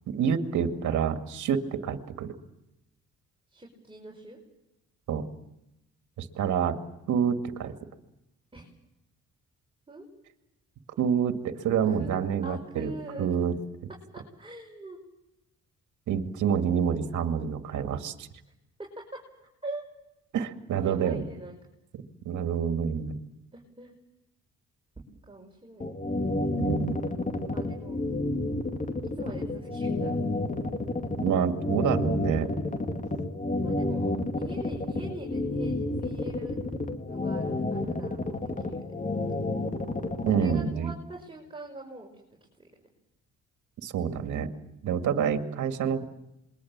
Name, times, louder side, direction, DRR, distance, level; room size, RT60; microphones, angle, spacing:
voice 1, 0.1-2.3 5.1-5.3 6.2-6.8 7.1-7.7 11.0-12.9 13.2-13.5 16.1-18.3 20.3-21.2 21.9-23.2 26.6-27.0 31.2-32.5 40.2-40.9 43.8-44.5 44.8-46.0, right 7 dB, 75° right, 6 dB, 2.2 m, -27 dB
voice 2, 3.5-4.4 8.5-8.7 9.9-10.1 11.8-13.3 14.4-15.0 18.5-18.6 19.6-19.8 20.7-21.6 23.5-23.9 25.3-26.0 27.5-28.0 29.0-30.3 33.6-36.6 37.1-39.0 40.4-42.2 42.6-42.7, right 2 dB, 15° right, -2 dB, 5.7 m, -43 dB
sound 1, 25.8-40.5, left 2 dB, 25° left, 2.5 m, -30 dB
27.5 x 22.5 x 7.4 m, 0.88 s
cardioid pair, 90°, 30 cm